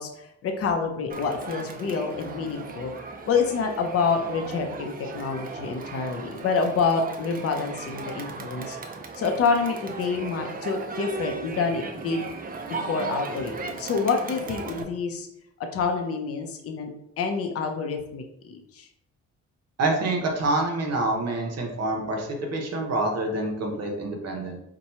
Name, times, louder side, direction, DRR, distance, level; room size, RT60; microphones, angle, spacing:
voice 1, 0.0-2.9 3.3-8.8 9.2-12.2 12.7-15.3 15.7-16.9 17.2-18.9, left 5 dB, 50° left, 4 dB, 0.6 m, -27 dB
Crowd, 1.1-14.8, right 4 dB, 30° right, 0.5 m, -37 dB
voice 2, 19.8-24.6, right 2 dB, 55° right, 1 dB, 0.8 m, -27 dB
2.9 x 2.2 x 4.2 m, 0.77 s
cardioid pair, 90°, 30 cm